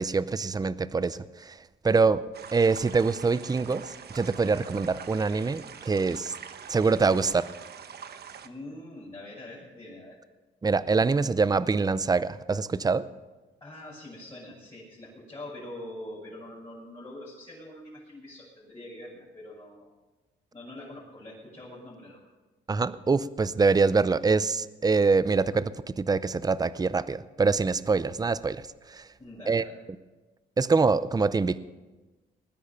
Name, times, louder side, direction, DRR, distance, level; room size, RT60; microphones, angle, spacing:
voice 1, 0.0-1.6 1.8-2.2 2.5-3.8 4.1-6.3 6.7-7.4 10.6-13.0 22.7-28.6 28.9-29.0 29.5-29.6 30.6-31.6, right 4 dB, 20° right, 16 dB, 0.6 m, -24 dB
sound 1, 2.3-8.5, right 7 dB, 55° right, 1.1 m, -44 dB
voice 2, 8.4-10.2 13.6-20.0 20.5-22.2 29.2-29.7, left 1 dB, 25° left, -8 dB, 6.7 m, -44 dB
20.0 x 10.5 x 5.9 m, 1.2 s
cardioid pair, 90°, 20 cm